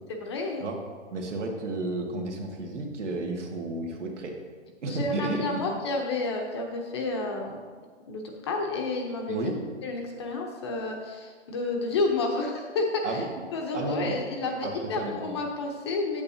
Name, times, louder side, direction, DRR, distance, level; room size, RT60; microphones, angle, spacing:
voice 1, 0.1-0.6 4.9-7.6 8.0-9.5 9.8-13.2 13.5-16.2, left 3 dB, 25° left, 2 dB, 0.7 m, -30 dB
voice 2, 1.1-4.3 4.8-5.6 9.3-9.6 13.0-13.3 13.7-14.2 14.6-15.3, right 2 dB, 75° right, 1 dB, 1.8 m, -32 dB
8.9 x 8.3 x 2.7 m, 1.5 s
hypercardioid pair, 155°, 36 cm